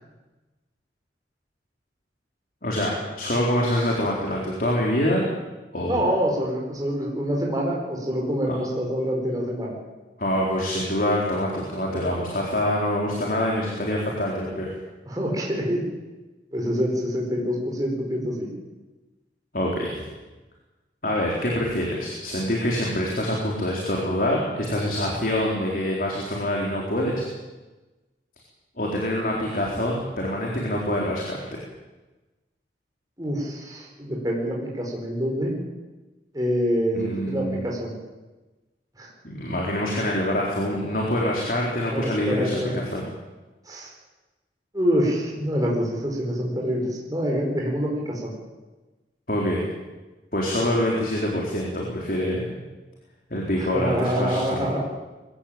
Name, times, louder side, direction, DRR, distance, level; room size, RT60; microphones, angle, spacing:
voice 1, 2.6-5.3 5.7-6.0 8.5-8.6 10.2-14.7 19.5-20.0 21.0-27.2 28.8-31.6 36.9-37.6 39.2-43.0 49.3-49.6 50.3-52.4 53.3-54.8, left 1 dB, 50° left, -2 dB, 4.3 m, -25 dB
voice 2, 5.9-9.8 15.1-15.8 16.5-18.5 33.2-35.5 36.3-37.9 39.0-39.1 41.9-42.8 43.7-43.9 44.7-48.3 53.6-54.8, equal, 20° right, -2 dB, 4.9 m, -26 dB
22.5 x 16.5 x 8.9 m, 1.2 s
head